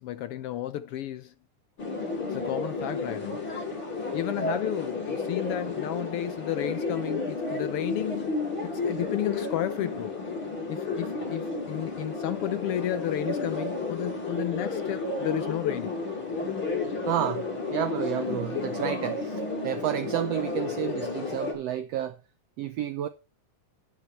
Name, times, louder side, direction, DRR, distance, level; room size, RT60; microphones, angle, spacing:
voice 1, 0.0-1.3 2.3-3.5 4.1-10.2 10.7-15.9, left 12 dB, 85° left, 1.2 m, -32 dB
sound 1, 1.8-21.5, left 3 dB, 40° left, 6.6 m, -32 dB
voice 2, 17.1-22.2 22.6-23.1, right 11 dB, 70° right, 1.6 m, -31 dB
11.5 x 10.5 x 4.1 m
omnidirectional pair, 3.5 m